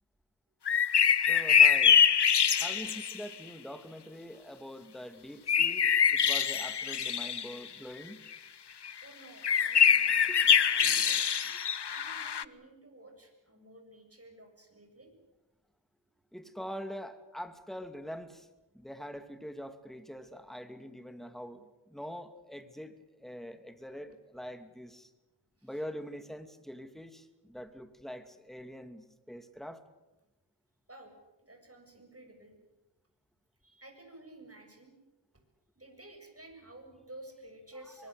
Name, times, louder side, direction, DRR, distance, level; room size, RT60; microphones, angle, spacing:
sound 1, 0.7-3.2 5.5-7.5 8.3-8.4 8.8-8.9 9.4-12.4, left 7 dB, 65° left, 0.8 m, -24 dB
voice 1, 1.3-2.0 2.6-8.2 10.3-10.4 10.8-11.2 16.3-18.5 18.7-25.1 25.6-29.8 38.0-38.1, equal, ahead, 9 dB, 2.4 m, -44 dB
voice 2, 2.6-3.0 9.0-10.2 10.5-11.2 11.9-15.1 25.6-25.7 30.9-31.1 31.4-32.5 33.6-34.9 35.8-38.1, right 1 dB, 35° right, 4 dB, 7.3 m, -53 dB
24.5 x 22.5 x 8.2 m, 1.0 s
wide cardioid pair, 55°, 43 cm